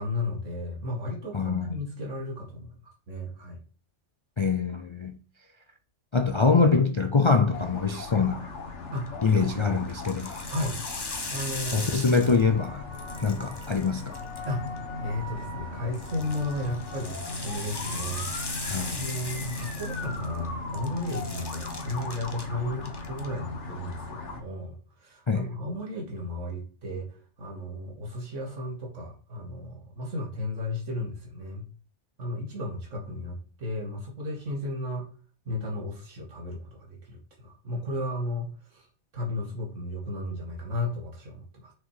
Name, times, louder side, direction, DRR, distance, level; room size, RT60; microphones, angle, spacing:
voice 1, 0.0-2.8 3.1-3.6 8.9-9.8 10.5-10.8 11.3-11.9 14.5-14.6 15.0-18.3 18.9-31.7 32.2-35.0 35.5-38.9 39.1-41.7, left 1 dB, 80° right, 2.1 m, -34 dB
voice 2, 1.3-1.8 4.4-5.2 6.1-8.5 9.2-10.4 11.7-12.8 13.2-14.1 18.7-19.1 25.3-25.5, left 4 dB, 40° left, 0.4 m, -24 dB
sound 1, 7.5-24.4, left 3 dB, 70° left, 1.6 m, -38 dB
sound 2, 9.1-9.4 9.9-12.7 12.9-14.8 15.9-20.5 20.7-22.5 22.8-23.3, left 2 dB, 20° left, 1.1 m, -38 dB
6.2 x 6.0 x 4.8 m
omnidirectional pair, 1.3 m